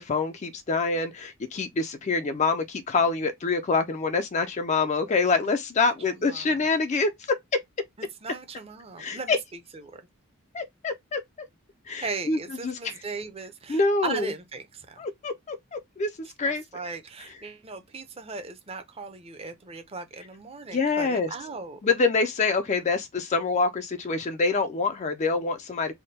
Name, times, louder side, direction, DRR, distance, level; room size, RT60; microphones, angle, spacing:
voice 1, 0.0-7.4 9.0-9.4 10.5-11.2 11.9-13.0 13.7-14.3 15.0-16.6 20.7-21.3 21.8-25.9, left 4 dB, 35° left, 0.4 m, -26 dB
voice 2, 6.3-6.6 8.2-9.4 12.0-15.0 16.7-21.8, right 4 dB, 30° right, 0.6 m, -37 dB
3.5 x 2.2 x 4.0 m
head